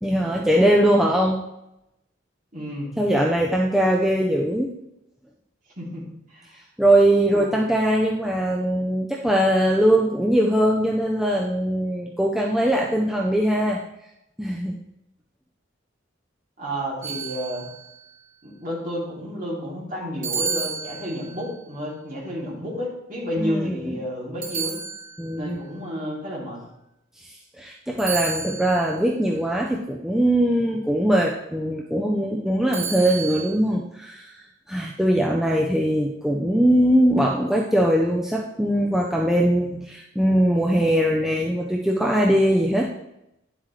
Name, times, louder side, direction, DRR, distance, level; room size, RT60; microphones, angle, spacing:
voice 1, 0.0-1.4 3.0-4.7 6.8-13.8 14.4-14.8 23.4-24.0 25.2-25.6 27.2-34.4 34.7-42.9, right 1 dB, ahead, -2 dB, 0.5 m, -21 dB
voice 2, 2.5-2.9 5.8-6.0 6.3-6.6 7.3-7.5 16.6-17.7 18.4-24.8 25.4-26.6, equal, 40° right, -5 dB, 2.8 m, -31 dB
sound 1, 17.0-17.9 20.2-21.5 24.4-25.5 28.0-28.9 32.7-33.5, right 5 dB, 85° right, 3.4 m, -31 dB
10.0 x 7.5 x 3.2 m, 0.85 s
head